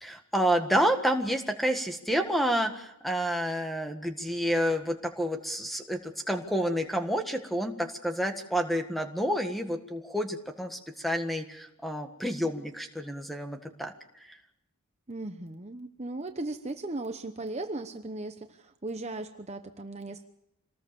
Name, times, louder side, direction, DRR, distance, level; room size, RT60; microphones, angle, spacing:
voice 1, 0.0-14.3, equal, ahead, 6 dB, 1.6 m, -29 dB
voice 2, 15.1-20.2, right 2 dB, 30° right, 7 dB, 0.9 m, -37 dB
26.0 x 19.5 x 7.0 m, 0.82 s
head